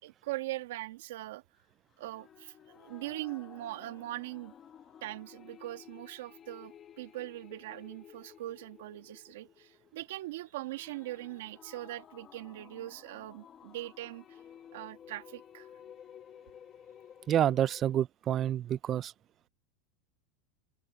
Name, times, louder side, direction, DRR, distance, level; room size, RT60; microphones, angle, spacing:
voice 1, 0.0-1.4 2.0-4.5 5.0-14.4 14.7-15.7, right 16 dB, 75° right, 1.8 m, -41 dB
sound 1, 2.0-18.0, left 9 dB, 25° left, 1.2 m, -55 dB
voice 2, 17.3-19.1, right 11 dB, 25° right, 0.4 m, -28 dB
open air
supercardioid pair, 160°, 0 cm